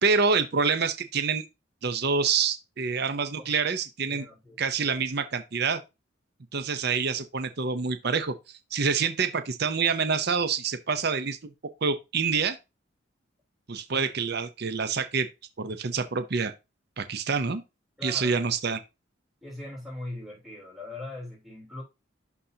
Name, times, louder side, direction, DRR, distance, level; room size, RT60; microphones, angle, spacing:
voice 1, 0.0-1.4 1.8-4.2 4.6-5.8 6.5-8.4 8.7-11.4 11.6-12.6 13.7-15.3 15.6-16.5 17.0-17.6 18.0-18.8, right 5 dB, 50° right, 0.7 m, -27 dB
voice 2, 4.1-5.1 18.0-18.4 19.4-21.8, left 1 dB, ahead, 3.3 m, -41 dB
11.0 x 4.0 x 2.8 m
head